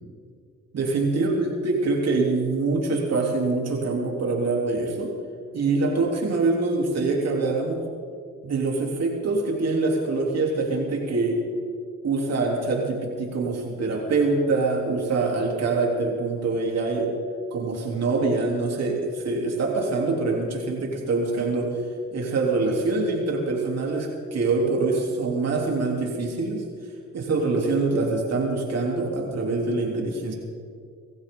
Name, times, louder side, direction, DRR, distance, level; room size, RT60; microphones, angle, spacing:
voice 1, 0.7-5.1 5.5-7.8 8.4-11.4 12.0-17.1 17.5-21.8 22.1-26.6 27.1-30.4, right 3 dB, 55° right, -1 dB, 3.8 m, -24 dB
24.0 x 14.5 x 4.1 m, 2.2 s
cardioid pair, 90°, 30 cm